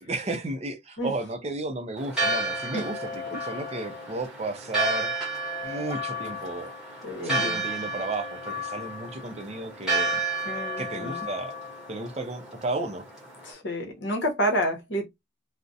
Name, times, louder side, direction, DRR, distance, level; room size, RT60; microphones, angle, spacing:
voice 1, 0.0-5.1 5.6-6.7 7.2-10.2 10.8-11.6 11.9-13.1, right 2 dB, 30° right, 0.4 m, -33 dB
Church bell, 2.0-13.5, right 2 dB, 5° right, 1.0 m, -31 dB
voice 2, 7.0-7.6 10.4-11.3 13.4-15.1, equal, 60° left, 0.8 m, -29 dB
2.4 x 2.0 x 2.6 m
head